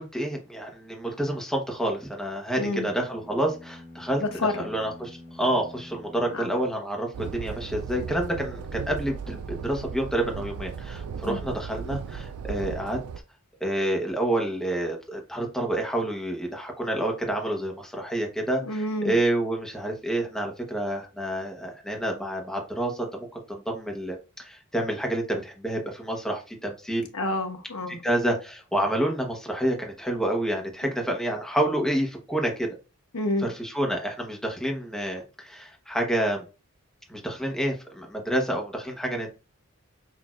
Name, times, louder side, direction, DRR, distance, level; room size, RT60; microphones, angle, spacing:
voice 1, 0.0-4.2 4.6-13.0 13.6-27.1 28.0-32.7 33.4-36.4 37.1-39.3, right 1 dB, ahead, 1.0 m, -28 dB
voice 2, 2.5-2.9 4.2-4.7 6.3-6.5 11.2-11.4 18.6-19.2 27.1-28.0 33.1-33.5, left 2 dB, 80° left, 0.9 m, -28 dB
sound 1, 2.9-7.3, left 1 dB, 35° left, 1.4 m, -47 dB
sound 2, 7.1-13.2, right 6 dB, 90° right, 0.3 m, -36 dB
6.1 x 2.6 x 2.4 m
head